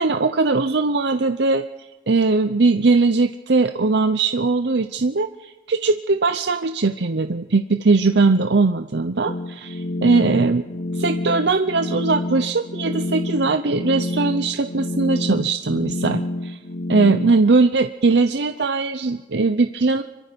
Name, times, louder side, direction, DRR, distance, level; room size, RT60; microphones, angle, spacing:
voice 1, 0.0-1.6 2.1-10.6 10.9-16.6 16.9-20.0, right 3 dB, 65° right, 8 dB, 0.7 m, -20 dB
sound 1, 9.3-17.3, left 1 dB, 50° left, 1.2 m, -28 dB
26.0 x 23.5 x 5.3 m, 1.1 s
head